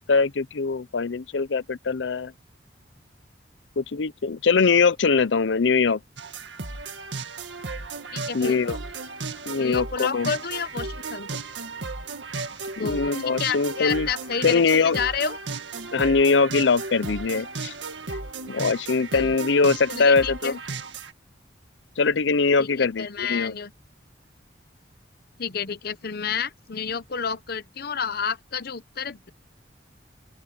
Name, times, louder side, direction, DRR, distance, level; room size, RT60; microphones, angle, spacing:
voice 1, 0.0-2.3 3.8-6.0 8.3-8.8 9.5-10.3 12.8-14.1 14.4-15.0 15.9-17.7 18.5-20.5 22.0-23.5, left 4 dB, 90° left, 0.6 m, -22 dB
sound 1, 6.2-21.1, right 3 dB, 85° right, 2.0 m, -35 dB
voice 2, 8.1-8.6 9.6-11.3 12.8-15.4 19.1-19.3 19.9-20.6 22.6-23.7 25.4-29.3, left 6 dB, 60° left, 0.9 m, -30 dB
open air
head